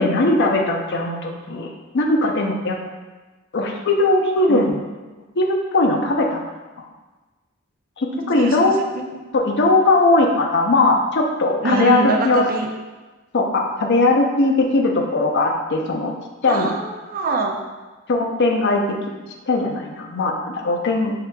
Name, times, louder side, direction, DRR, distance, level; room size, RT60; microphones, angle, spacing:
voice 1, 0.0-1.7 1.9-2.8 3.5-4.7 5.4-6.4 8.0-8.7 9.3-12.4 13.3-16.1 16.4-16.7 18.1-18.8 19.5-21.1, left 2 dB, 55° left, 2 dB, 0.5 m, -19 dB
voice 2, 4.5-4.8 8.2-9.0 11.6-12.7 16.5-17.6, right 3 dB, 45° right, 3 dB, 0.5 m, -24 dB
5.7 x 3.6 x 2.3 m, 1.2 s
head